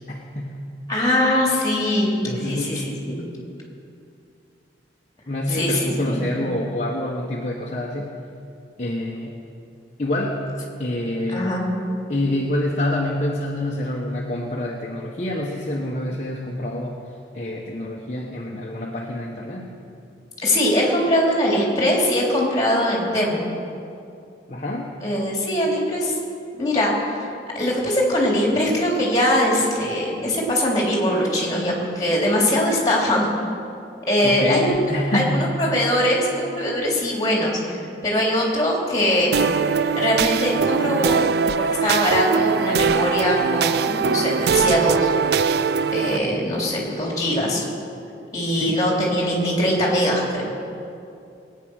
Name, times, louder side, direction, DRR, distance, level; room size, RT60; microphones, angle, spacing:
voice 1, 0.1-0.7 2.2-2.9 5.3-8.1 8.8-9.4 10.0-10.5 10.8-11.6 12.1-17.0 17.3-19.7 24.5-24.9 34.2-35.6 48.6-48.8, left 1 dB, 40° left, -2 dB, 1.1 m, -27 dB
voice 2, 0.9-3.2 5.5-6.3 11.3-11.7 20.4-23.4 25.0-26.2 26.5-27.3 27.5-33.3 34.1-37.6 38.0-39.4 40.0-41.2 41.6-45.1 45.9-47.6 48.3-50.5, left 1 dB, 20° left, -2 dB, 3.3 m, -21 dB
sound 1, 39.3-46.2, right 6 dB, 60° right, 0.4 m, -21 dB
20.0 x 9.2 x 6.3 m, 2.6 s
head